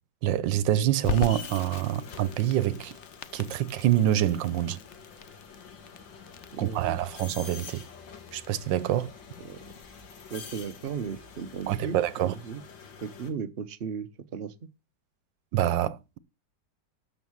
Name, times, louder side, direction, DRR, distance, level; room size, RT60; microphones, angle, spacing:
voice 1, 0.2-2.9 3.3-4.8 6.6-7.8 8.3-9.1 11.7-12.3 15.5-16.2, right 12 dB, 85° right, 1.4 m, -26 dB
Crackle, 1.0-11.8, left 7 dB, 55° left, 0.8 m, -40 dB
sound 1, 1.1-13.3, left 6 dB, 85° left, 2.4 m, -47 dB
voice 2, 6.5-7.0 9.4-9.6 10.3-12.0 12.2-12.6 13.0-14.5, right 6 dB, 45° right, 0.8 m, -36 dB
12.5 x 5.4 x 7.2 m
omnidirectional pair, 2.0 m